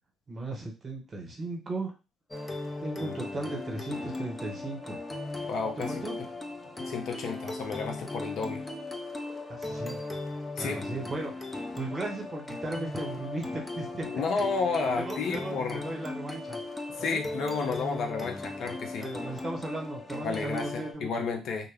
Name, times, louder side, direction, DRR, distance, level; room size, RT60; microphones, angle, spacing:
voice 1, 0.3-1.9 2.8-5.0 5.9-6.2 9.5-10.0 10.6-14.1 15.0-16.6 17.0-17.2 19.0-21.3, right 2 dB, 40° right, 1 dB, 1.1 m, -36 dB
sound 1, 2.3-20.9, left 2 dB, 15° left, 0.6 m, -37 dB
voice 2, 5.4-6.0 6.8-8.7 10.6-10.9 14.0-15.8 17.0-19.1 20.2-21.7, left 4 dB, 65° left, 4 dB, 0.5 m, -31 dB
2.1 x 2.1 x 3.4 m, 0.29 s
supercardioid pair, 60°, 0 cm